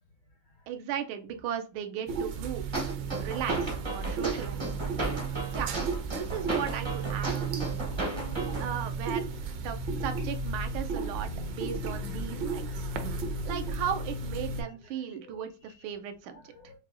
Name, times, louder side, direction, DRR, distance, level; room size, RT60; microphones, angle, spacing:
voice 1, 0.7-2.7 3.2-4.7 5.5-5.7 6.0-7.6 8.6-9.2 9.6-12.9 13.4-16.4, right 9 dB, 85° right, 1.5 m, -36 dB
sound 1, 2.1-14.6, right 4 dB, 70° right, 1.2 m, -33 dB
sound 2, 2.7-8.7, right 1 dB, 35° right, 0.4 m, -35 dB
voice 2, 8.2-8.6 11.0-12.4 12.8-13.5 14.6-15.7 16.3-16.8, left 3 dB, 75° left, 0.8 m, -50 dB
5.7 x 2.3 x 2.5 m
omnidirectional pair, 2.3 m